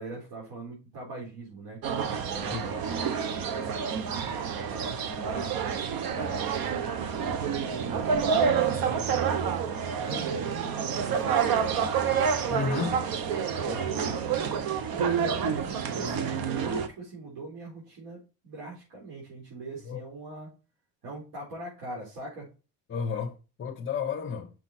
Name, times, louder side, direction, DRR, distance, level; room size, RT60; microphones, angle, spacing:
voice 1, 0.0-1.8 2.2-5.5 6.0-9.0 10.0-10.7 11.0-12.1 13.5-20.5 21.0-22.5, right 2 dB, 80° right, 4.4 m, -41 dB
sound 1, 1.8-16.9, right 7 dB, 60° right, 1.1 m, -28 dB
voice 2, 12.5-13.0 19.8-20.0 22.9-24.5, left 6 dB, 30° left, 1.1 m, -32 dB
6.6 x 6.1 x 4.4 m
cardioid pair, 145°, 39 cm